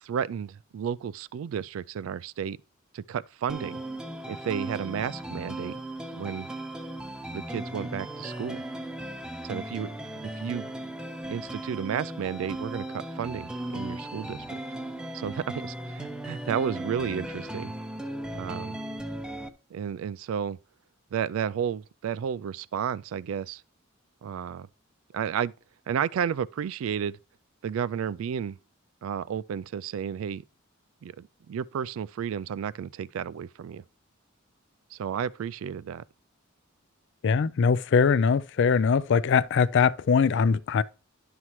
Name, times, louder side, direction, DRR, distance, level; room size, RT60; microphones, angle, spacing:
voice 1, 0.0-2.6 2.9-3.8 4.3-5.8 6.2-6.5 7.3-8.6 9.4-9.9 10.4-10.7 11.3-14.6 15.1-17.7 18.3-18.8 19.7-20.6 21.1-23.6 24.2-24.7 25.1-25.5 25.9-27.2 27.6-28.6 29.0-30.4 31.0-33.8 34.9-36.0, right 8 dB, 75° right, 0.3 m, -32 dB
sound 1, 3.5-19.5, right 1 dB, 5° right, 0.6 m, -37 dB
voice 2, 37.2-40.8, left 5 dB, 60° left, 0.4 m, -22 dB
11.0 x 5.7 x 3.1 m
head